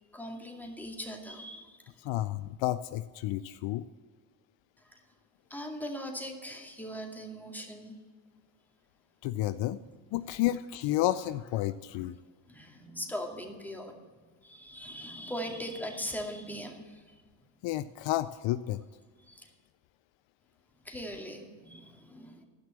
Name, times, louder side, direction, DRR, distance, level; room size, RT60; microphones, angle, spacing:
voice 1, 0.1-1.9 4.9-5.0 5.5-7.9 9.8-9.9 12.5-13.9 14.4-17.2 19.2-19.5 20.8-22.4, equal, 5° left, 1 dB, 2.3 m, -40 dB
voice 2, 2.0-3.8 9.2-9.8 10.1-12.2 17.6-18.8, left 14 dB, 70° left, 13 dB, 0.6 m, -31 dB
12.0 x 6.0 x 7.5 m, 1.5 s
supercardioid pair, 70°, 48 cm